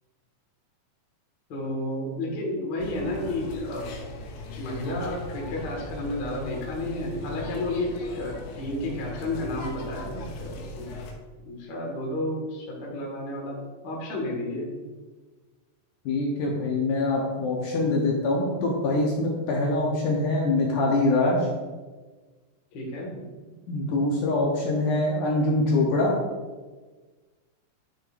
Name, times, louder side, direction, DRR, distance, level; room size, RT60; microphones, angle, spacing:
voice 1, 1.5-3.9 4.6-10.9 11.4-14.7 22.7-23.2, left 1 dB, 50° left, -2 dB, 1.3 m, -31 dB
sound 1, 2.8-11.1, left 2 dB, 90° left, 3.0 m, -39 dB
voice 2, 16.1-21.5 23.7-26.1, left 2 dB, 70° left, -2 dB, 2.2 m, -24 dB
10.0 x 6.4 x 2.5 m, 1.3 s
omnidirectional pair, 4.4 m